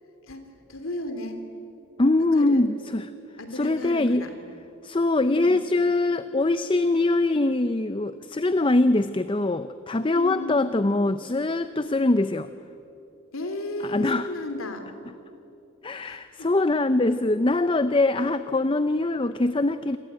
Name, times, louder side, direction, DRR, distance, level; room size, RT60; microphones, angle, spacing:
voice 1, 0.7-1.4 2.3-2.6 3.4-4.3 5.3-5.6 10.1-10.7 13.3-14.9 16.0-16.2, left 2 dB, 75° left, 7 dB, 3.1 m, -34 dB
voice 2, 2.0-3.1 3.5-4.3 4.8-12.5 13.8-14.3 15.8-20.0, left 2 dB, 25° left, 12 dB, 0.5 m, -23 dB
28.5 x 22.0 x 9.1 m, 2.9 s
head